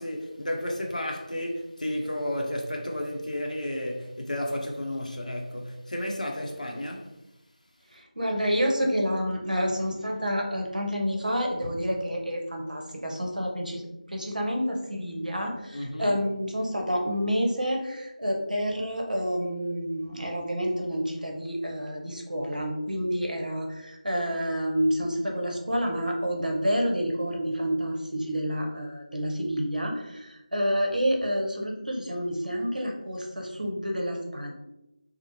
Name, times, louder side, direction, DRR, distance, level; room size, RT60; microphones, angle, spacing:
voice 1, 0.0-7.2 15.7-16.2, left 1 dB, 65° left, 0.6 m, -32 dB
voice 2, 7.9-13.8 14.1-34.5, equal, 85° right, 0.7 m, -29 dB
3.1 x 2.0 x 2.8 m
figure-of-eight pair, 165°, 4 cm